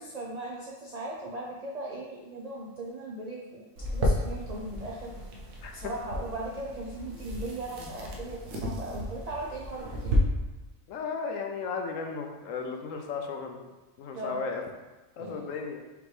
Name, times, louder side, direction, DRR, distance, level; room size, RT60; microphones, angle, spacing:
voice 1, 0.0-3.7 3.9-5.1 5.7-10.2 14.1-14.4 15.2-15.5, right 2 dB, 70° right, -3 dB, 0.3 m, -38 dB
sound 1, 3.8-10.2, equal, 85° right, 1.2 m, -34 dB
voice 2, 10.9-13.7 14.0-14.6 15.2-15.8, left 5 dB, 75° left, 4 dB, 1.0 m, -35 dB
5.1 x 3.0 x 3.2 m, 1.1 s
omnidirectional pair, 1.4 m